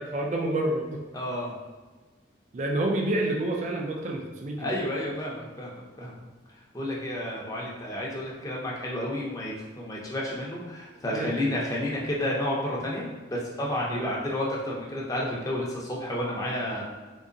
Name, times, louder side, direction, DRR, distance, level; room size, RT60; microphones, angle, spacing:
voice 1, 0.0-1.0 2.5-4.8 11.1-11.6 13.9-14.2, right 1 dB, 40° right, 0 dB, 0.3 m, -29 dB
voice 2, 1.1-1.5 4.6-6.1 6.7-16.8, left 1 dB, 20° left, -4 dB, 0.6 m, -31 dB
3.8 x 2.9 x 2.6 m, 1.3 s
head